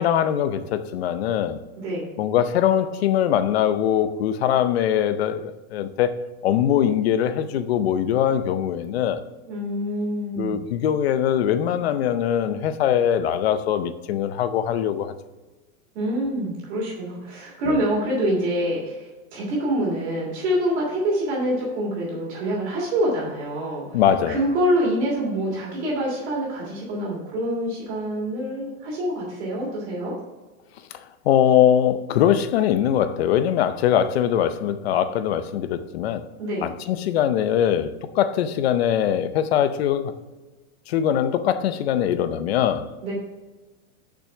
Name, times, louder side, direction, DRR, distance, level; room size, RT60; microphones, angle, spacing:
voice 1, 0.0-1.6 2.2-6.1 6.4-9.2 10.4-15.1 17.7-17.8 23.9-24.4 31.2-36.2 36.6-40.1 40.9-42.9, left 10 dB, 45° left, 0.6 m, -22 dB
voice 2, 1.8-2.1 9.5-10.6 15.9-23.8 24.3-30.1 36.4-36.7 43.0-43.1, equal, 50° right, 3.0 m, -26 dB
6.7 x 6.3 x 5.7 m
supercardioid pair, 175°, 43 cm